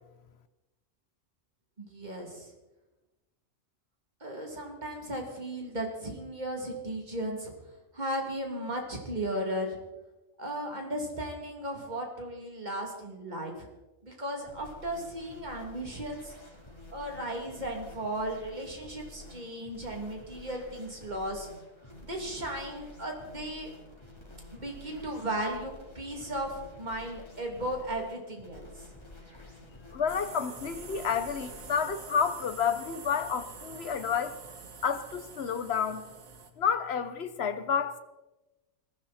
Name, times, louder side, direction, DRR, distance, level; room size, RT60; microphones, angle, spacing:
voice 1, 1.8-2.5 4.2-7.5 7.9-9.8 10.4-13.7 14.0-16.3 16.9-21.5 22.1-23.7 24.5-28.7, right 1 dB, 30° right, 2.9 m, -36 dB
sound 1, 14.5-31.9, left 1 dB, 20° left, 3.5 m, -50 dB
voice 2, 29.9-34.4 34.8-36.1 36.6-38.0, left 7 dB, 50° left, 1.2 m, -30 dB
sound 2, 30.1-36.5, right 5 dB, 80° right, 1.8 m, -46 dB
20.5 x 15.0 x 4.3 m
omnidirectional pair, 1.4 m